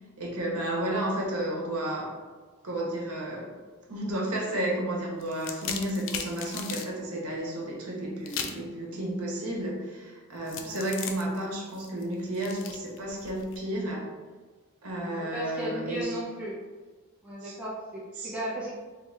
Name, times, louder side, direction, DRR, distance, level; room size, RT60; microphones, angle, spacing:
voice 1, 0.2-2.1 2.6-3.5 3.9-14.1 14.8-16.2 17.4-17.6 18.2-18.3, right 1 dB, 90° right, -2 dB, 0.9 m, -32 dB
sound 1, 5.2-6.9 8.3-8.7 10.5-13.6, left 7 dB, 60° left, 0.4 m, -37 dB
voice 2, 15.0-16.6 17.2-18.7, right 1 dB, 5° right, -8 dB, 0.7 m, -35 dB
3.2 x 2.5 x 3.3 m, 1.3 s
head